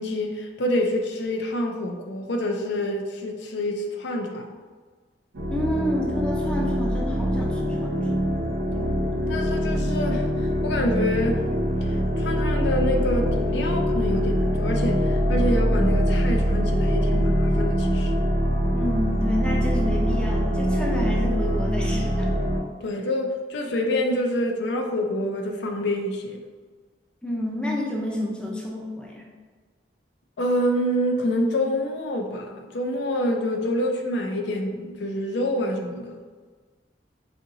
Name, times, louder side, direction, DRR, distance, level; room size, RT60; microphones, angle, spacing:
voice 1, 0.0-4.5 9.3-10.3 10.6-11.4 12.2-18.1 22.8-26.4 30.4-36.2, left 1 dB, 75° left, 3 dB, 0.5 m, -27 dB
sound 1, 5.3-22.6, equal, 85° right, 0.7 m, -23 dB
voice 2, 5.5-7.9 18.7-22.3 27.2-29.3, left 1 dB, 5° left, -2 dB, 0.5 m, -29 dB
4.2 x 2.7 x 2.6 m, 1.5 s
head